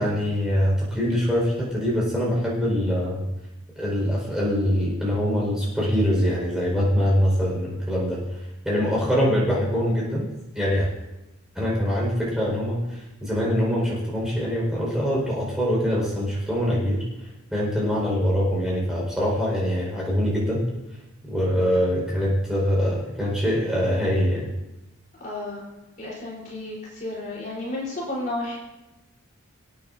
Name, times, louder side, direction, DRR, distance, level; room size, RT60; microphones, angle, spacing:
voice 1, 0.0-3.2 3.8-8.2 8.6-10.3 10.5-10.9 11.5-17.0 17.5-20.6 21.2-24.5, equal, 5° right, -5 dB, 4.9 m, -23 dB
voice 2, 25.2-25.6 26.0-28.6, left 2 dB, 40° left, -6 dB, 4.0 m, -32 dB
25.5 x 9.0 x 2.7 m, 1.0 s
head